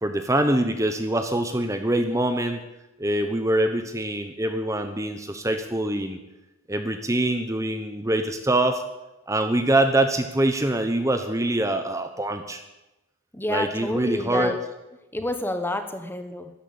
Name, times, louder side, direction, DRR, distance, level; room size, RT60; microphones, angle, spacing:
voice 1, 0.0-2.6 3.0-6.2 6.7-8.8 9.3-12.6 13.5-14.6, right 1 dB, 15° right, 7 dB, 1.0 m, -24 dB
voice 2, 13.3-14.6 15.1-16.5, left 1 dB, 10° left, 8 dB, 1.1 m, -29 dB
13.0 x 12.5 x 8.9 m, 1.0 s
head